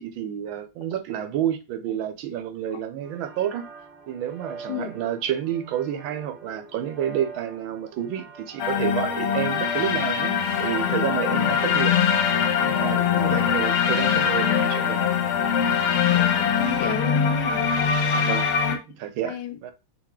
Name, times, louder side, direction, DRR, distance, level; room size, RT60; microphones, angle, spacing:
voice 1, 0.0-3.6 4.1-12.1 12.6-15.1 18.1-18.5 18.9-19.7, right 10 dB, 85° right, 1.4 m, -30 dB
sound 1, 3.0-13.3, right 4 dB, 55° right, 2.2 m, -44 dB
sound 2, 8.6-18.8, left 7 dB, 90° left, 1.6 m, -22 dB
voice 2, 16.1-17.6 18.7-18.8 19.3-19.6, left 9 dB, 75° left, 1.1 m, -32 dB
5.6 x 2.4 x 3.6 m
omnidirectional pair, 2.2 m